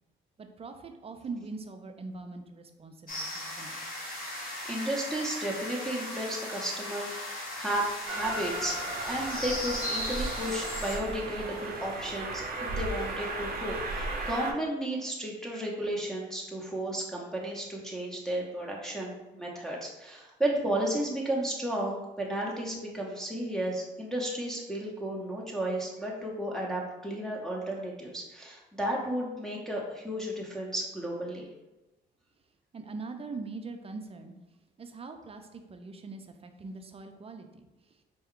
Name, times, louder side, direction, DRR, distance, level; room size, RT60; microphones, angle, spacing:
voice 1, 0.4-3.8 32.7-34.3 34.8-37.7, right 3 dB, 30° right, 6 dB, 0.5 m, -42 dB
sound 1, 3.1-11.0, left 1 dB, 45° left, 1.4 m, -37 dB
voice 2, 4.6-8.8 9.0-31.5, right 1 dB, ahead, -3 dB, 0.7 m, -33 dB
Train, 8.1-14.5, right 2 dB, 50° right, 0.9 m, -35 dB
4.3 x 2.3 x 3.7 m, 1.0 s
cardioid pair, 90°, 20 cm